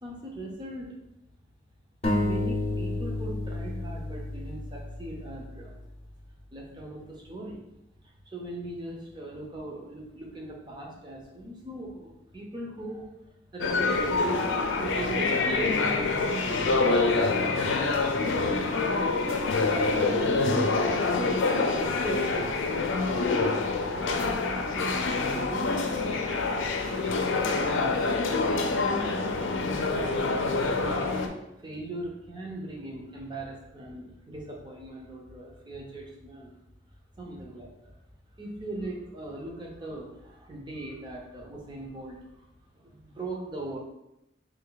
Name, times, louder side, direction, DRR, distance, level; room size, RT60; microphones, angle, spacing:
voice 1, 0.0-1.0 2.2-5.8 6.5-7.6 8.0-14.4 14.8-19.3 19.9-23.4 23.9-29.5 29.9-30.4 30.8-31.1 31.6-36.5 37.2-38.0 38.4-42.5 42.7-43.8, right 1 dB, 25° right, -1 dB, 0.7 m, -39 dB
sound 1, 2.0-5.7, left 2 dB, 30° left, 0.7 m, -31 dB
sound 2, 13.6-31.3, left 3 dB, 80° left, 0.5 m, -26 dB
3.4 x 3.2 x 3.9 m, 0.88 s
head